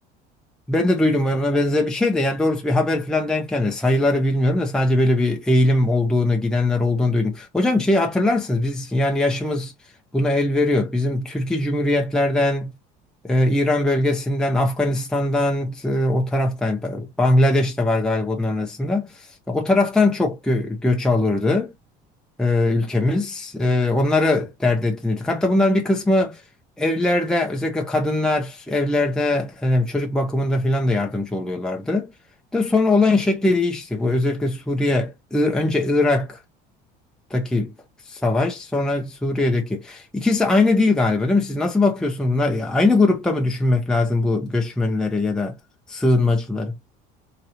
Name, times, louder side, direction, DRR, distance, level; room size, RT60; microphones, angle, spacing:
voice 1, 0.7-9.7 10.1-12.7 13.2-21.7 22.4-26.4 26.8-32.1 32.5-36.4 37.3-37.7 38.1-45.6 45.9-46.7, left 2 dB, 5° left, 0.7 m, -21 dB
4.7 x 2.8 x 2.7 m
cardioid pair, 130°, 19 cm